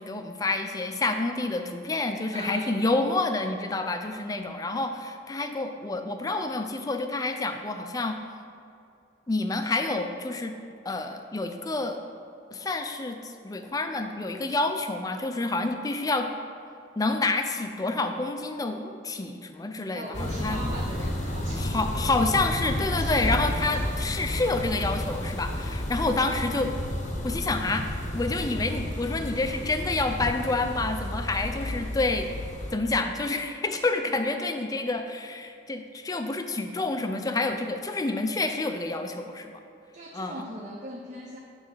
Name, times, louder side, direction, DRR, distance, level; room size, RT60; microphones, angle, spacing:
voice 1, 0.0-8.2 9.3-10.5 10.8-12.0 12.5-16.3 17.0-20.6 21.6-26.7 27.2-27.9 28.1-32.3 32.7-39.5 40.1-40.4, left 2 dB, 20° left, 6 dB, 0.4 m, -28 dB
voice 2, 2.3-2.8 4.7-4.8 19.9-21.8 22.8-23.9 39.9-41.4, right 1 dB, 40° right, 0 dB, 0.5 m, -39 dB
sound 1, 20.1-32.7, left 1 dB, 40° left, 0.8 m, -31 dB
9.5 x 3.2 x 5.6 m, 2.5 s
head